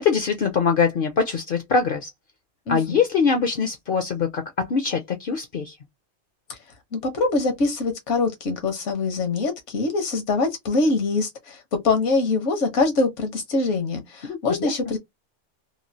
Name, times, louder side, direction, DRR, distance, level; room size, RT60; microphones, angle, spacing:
voice 1, 0.0-2.1 2.7-5.8 14.3-14.7, left 5 dB, 60° left, 0.6 m, -23 dB
voice 2, 2.7-3.0 6.5-6.6 6.9-15.0, left 3 dB, 75° left, 1.2 m, -24 dB
3.0 x 2.3 x 2.6 m
omnidirectional pair, 1.2 m